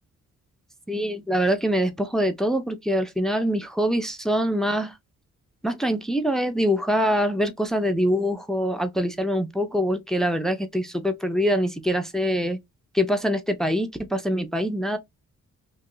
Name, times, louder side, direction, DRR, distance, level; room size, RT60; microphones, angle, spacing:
voice 1, 0.9-4.9 5.6-12.6 12.9-15.0, equal, ahead, 0.7 m, -24 dB
3.2 x 2.8 x 3.7 m
cardioid pair, 90°, 31 cm